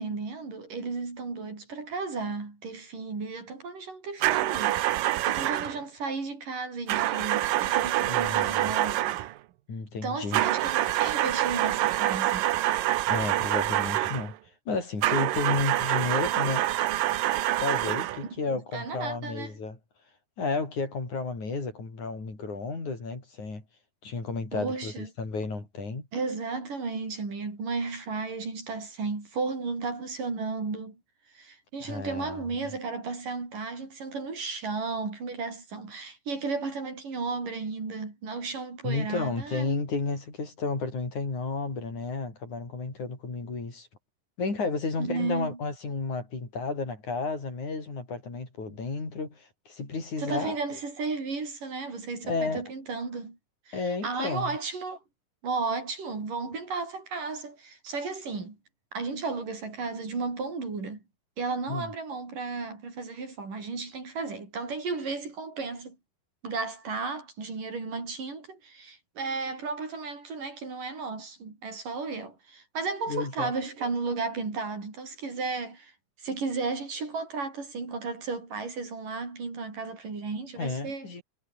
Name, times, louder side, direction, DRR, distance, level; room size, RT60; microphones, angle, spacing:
voice 1, 0.0-4.8 5.2-9.1 10.0-12.4 18.2-19.6 24.5-25.1 26.1-31.0 31.3-39.7 45.0-45.6 50.2-53.4 53.7-55.0 55.4-58.6 58.9-61.0 61.4-66.0 66.4-75.9 76.2-81.1, right 4 dB, 70° right, 8.4 m, -34 dB
sound 1, 4.2-5.8 6.9-9.3 10.3-14.3 15.0-18.3, right 15 dB, 85° right, 2.7 m, -26 dB
voice 2, 8.1-8.7 9.7-10.4 13.1-14.4 14.7-16.7 17.6-19.8 20.4-23.6 24.0-26.1 31.8-32.5 38.8-43.9 44.4-50.8 52.2-52.6 53.7-54.6 61.7-61.9 73.1-73.5 80.6-81.2, left 4 dB, 55° left, 8.6 m, -32 dB
omnidirectional pair, 4.0 m